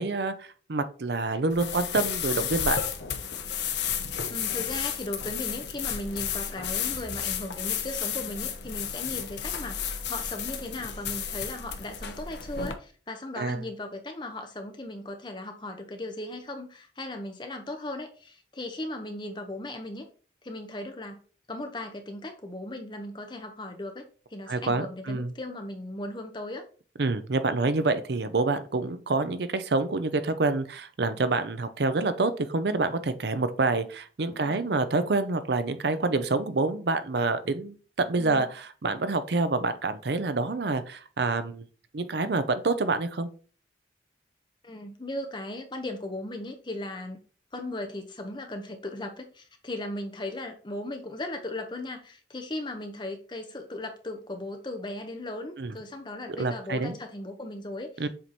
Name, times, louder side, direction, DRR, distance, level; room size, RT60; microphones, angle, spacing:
voice 1, 0.0-2.8 13.4-13.6 24.5-25.3 27.0-41.6 41.9-43.3 55.6-55.7 56.4-57.0 58.0-58.1, right 3 dB, 65° right, 0.6 m, -27 dB
sound 1, 1.5-12.7, left 8 dB, 70° left, 0.8 m, -32 dB
voice 2, 4.3-20.1 20.4-21.2 21.5-24.1 24.3-26.6 34.3-34.6 38.2-38.5 44.6-47.2 47.5-58.1, left 1 dB, 25° left, 0.9 m, -37 dB
7.6 x 3.0 x 4.1 m
head